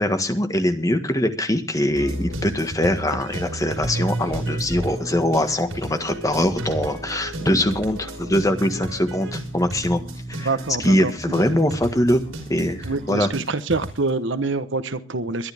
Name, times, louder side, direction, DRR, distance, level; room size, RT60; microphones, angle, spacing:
voice 1, 0.0-10.0 10.4-10.5 10.8-12.2 12.5-13.3, left 1 dB, 15° left, 7 dB, 1.6 m, -22 dB
sound 1, 1.9-14.1, right 1 dB, 75° right, 5.3 m, -32 dB
Bass guitar, 3.7-13.3, right 1 dB, 25° right, 7.1 m, -37 dB
voice 2, 10.4-11.6 12.8-15.5, right 3 dB, 60° right, 12 dB, 1.1 m, -26 dB
22.5 x 11.5 x 3.6 m, 0.35 s
head